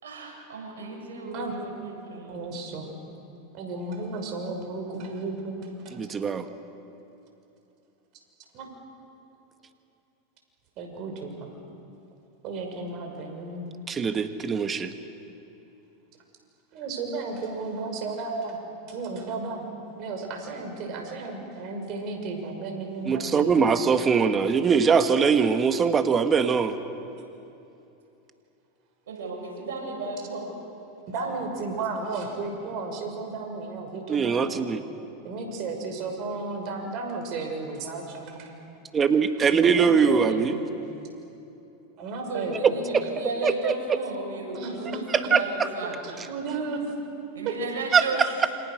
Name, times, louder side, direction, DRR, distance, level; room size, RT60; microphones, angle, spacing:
voice 1, 0.0-2.5 24.2-24.5 29.1-30.5 31.1-31.3 42.3-46.2 47.3-48.3, right 3 dB, 80° right, 0 dB, 7.1 m, -34 dB
voice 2, 2.3-2.9 3.5-5.6 5.8-6.0 8.5-8.7 10.8-11.5 12.4-13.7 16.7-18.6 18.9-19.6 20.0-23.6 31.1-34.5 35.2-38.5 39.4-40.6 42.0-42.5 44.5-45.0 46.1-46.9 47.4-47.6 47.9-48.3, right 3 dB, 50° right, 3 dB, 6.0 m, -34 dB
voice 3, 6.0-6.4 13.9-14.9 23.1-26.7 34.1-34.8 38.9-40.6 43.4-43.7 45.1-45.4 47.9-48.0, right 6 dB, 25° right, 8 dB, 1.5 m, -22 dB
28.5 x 26.0 x 6.5 m, 2.9 s
hypercardioid pair, 105°, 0 cm